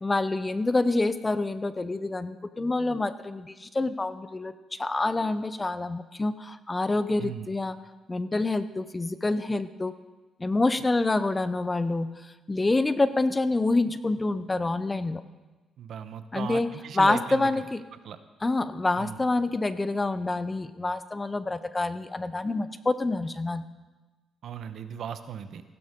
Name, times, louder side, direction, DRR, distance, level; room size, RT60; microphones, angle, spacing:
voice 1, 0.0-7.8 8.1-9.9 10.4-15.2 16.3-16.7 16.9-17.8 18.4-23.7, left 2 dB, 20° left, 13 dB, 0.6 m, -27 dB
voice 2, 15.8-17.5 18.0-18.2 19.0-19.2 24.4-25.6, right 8 dB, 65° right, 10 dB, 0.8 m, -37 dB
15.5 x 12.0 x 3.7 m, 1.2 s
cardioid pair, 90°, 0 cm